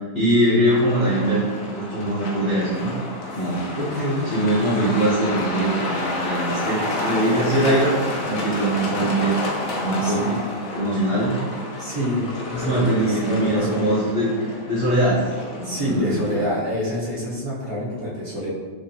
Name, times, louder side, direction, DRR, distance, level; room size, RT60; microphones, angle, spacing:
voice 1, 0.1-1.4 1.7-2.9 3.3-3.7 4.3-9.4 9.8-10.3 10.7-11.4 12.5-15.3 15.6-16.4, right 1 dB, 50° left, -9 dB, 1.0 m, -22 dB
Truck, 0.7-16.5, left 2 dB, 65° left, 0.9 m, -30 dB
voice 2, 3.8-4.3 10.0-10.4 11.2-11.5 11.8-13.9 15.6-18.5, left 1 dB, 40° right, -8 dB, 1.0 m, -27 dB
5.1 x 2.7 x 2.7 m, 1.4 s
omnidirectional pair, 2.0 m